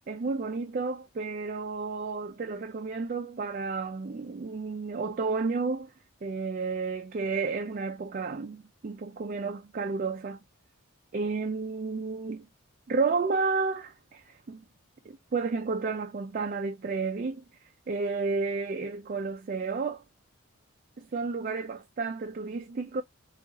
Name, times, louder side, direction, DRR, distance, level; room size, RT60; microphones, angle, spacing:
voice 1, 0.1-5.9 6.2-10.4 11.1-12.5 12.9-14.6 15.1-20.0 21.0-23.0, right 4 dB, 40° right, 0.3 m, -31 dB
3.6 x 2.4 x 3.9 m
head